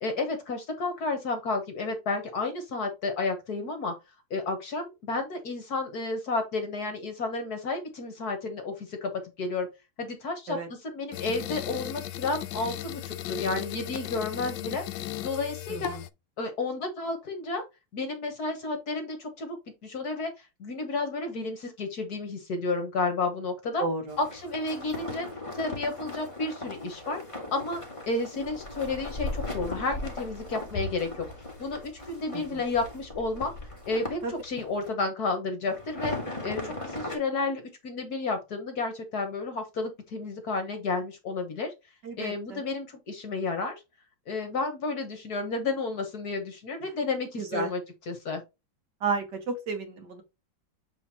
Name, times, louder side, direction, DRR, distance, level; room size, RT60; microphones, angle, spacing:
voice 1, 0.0-3.9 4.3-9.1 9.4-9.7 10.0-10.6 10.8-14.8 15.2-16.0 16.4-17.6 17.9-20.3 20.6-23.8 24.2-25.3 25.5-27.2 27.5-31.3 31.6-33.5 33.9-36.1 36.4-41.7 42.2-43.8 44.3-47.8 48.1-48.4, left 3 dB, 55° left, 1.7 m, -31 dB
sound 1, 11.1-16.1, left 14 dB, 75° left, 1.1 m, -36 dB
voice 2, 15.7-16.0 23.8-24.2 32.3-32.6 34.2-34.3 42.0-42.6 47.4-47.7 49.0-50.2, right 4 dB, 65° right, 2.2 m, -32 dB
sound 2, 24.1-34.9 35.6-37.2, left 2 dB, 15° left, 2.1 m, -38 dB
7.8 x 4.3 x 3.0 m
omnidirectional pair, 2.1 m